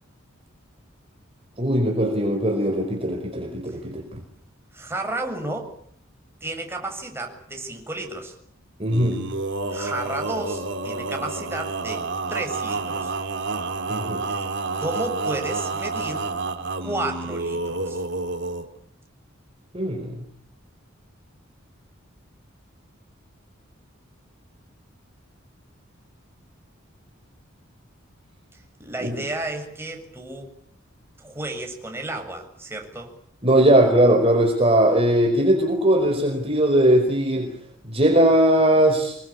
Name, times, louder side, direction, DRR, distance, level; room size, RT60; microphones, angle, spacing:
voice 1, 1.6-4.2 8.8-9.2 13.9-14.2 19.7-20.1 29.0-29.1 33.4-37.5 37.9-39.2, right 1 dB, 30° right, 3 dB, 4.8 m, -19 dB
voice 2, 4.7-5.7 6.4-8.4 9.7-13.1 14.3-14.5 14.8-16.3 16.8-18.0 28.8-30.5 31.2-33.1, right 2 dB, 10° right, 3 dB, 7.0 m, -32 dB
Male singing, 8.9-18.7, right 3 dB, 60° right, 3.2 m, -29 dB
27.0 x 24.0 x 8.5 m, 0.63 s
head